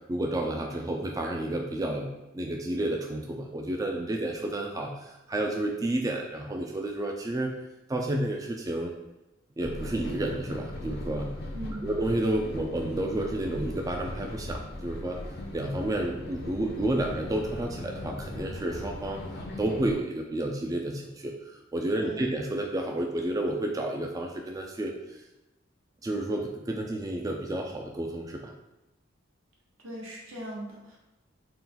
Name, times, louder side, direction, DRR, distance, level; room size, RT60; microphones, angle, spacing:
voice 1, 0.1-7.5 7.9-8.9 9.6-11.3 11.8-15.2 15.5-19.2 19.6-25.2 26.0-28.5, right 1 dB, 20° right, 1 dB, 0.3 m, -31 dB
sound 1, 9.6-19.9, left 1 dB, 55° left, 0.6 m, -39 dB
voice 2, 11.5-11.9 22.0-22.3 29.8-31.0, right 1 dB, 80° right, -3 dB, 1.2 m, -39 dB
4.1 x 2.3 x 3.8 m, 0.98 s
head